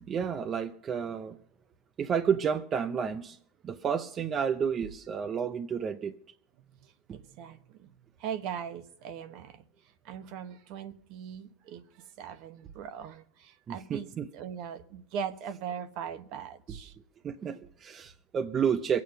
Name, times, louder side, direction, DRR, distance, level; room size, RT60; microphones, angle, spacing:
voice 1, 0.0-1.4 2.0-3.4 3.6-6.1 7.1-7.2 13.7-14.3 17.2-19.0, right 7 dB, 30° right, 0.7 m, -31 dB
voice 2, 6.8-7.9 8.2-9.6 10.0-11.8 12.2-14.1 14.3-16.9, right 8 dB, 60° right, 1.2 m, -40 dB
22.5 x 8.4 x 5.5 m
supercardioid pair, 120°, 0 cm